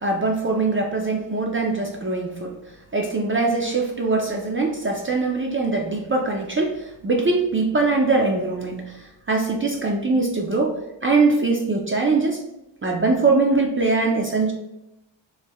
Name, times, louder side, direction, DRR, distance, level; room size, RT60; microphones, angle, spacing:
voice 1, 0.0-2.5 2.9-10.8 11.0-12.4 12.8-14.5, right 3 dB, 30° right, 0 dB, 0.4 m, -22 dB
3.1 x 2.1 x 3.5 m, 0.90 s
cardioid pair, 80°, 46 cm